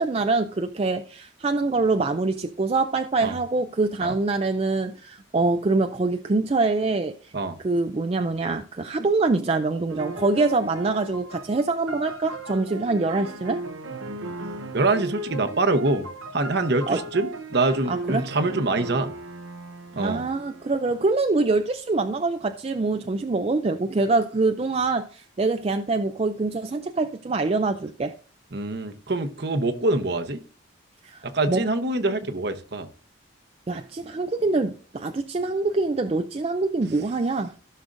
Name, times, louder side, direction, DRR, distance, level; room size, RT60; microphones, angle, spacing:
voice 1, 0.0-7.1 7.6-13.6 16.9-17.0 17.9-18.3 19.9-28.1 31.0-31.7 33.7-37.5, right 3 dB, 30° right, 0.4 m, -24 dB
sound 1, 9.9-21.1, right 2 dB, 85° right, 0.9 m, -36 dB
voice 2, 14.7-16.0 16.3-19.1 20.0-20.3 28.5-30.4 31.2-32.9, right 2 dB, 55° right, 0.9 m, -25 dB
15.5 x 6.4 x 2.5 m
head